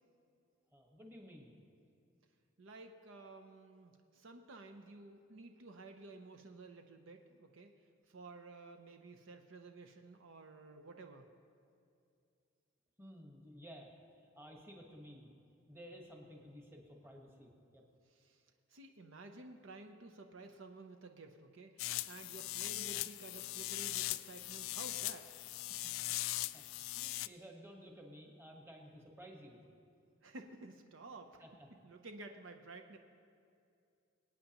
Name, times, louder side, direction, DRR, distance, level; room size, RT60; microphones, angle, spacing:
voice 1, 0.7-1.5 13.0-13.9 14.4-15.3 15.7-17.8 26.5-26.6 26.9-29.6 31.4-31.7, equal, 10° right, 0 dB, 1.3 m, -54 dB
voice 2, 2.6-7.7 8.1-11.3 18.1-18.4 18.7-26.0 30.2-31.4 31.7-33.0, right 2 dB, 70° right, 5 dB, 0.7 m, -53 dB
sound 1, 21.8-27.3, left 16 dB, 75° left, 0.3 m, -40 dB
23.5 x 9.0 x 3.0 m, 2.5 s
head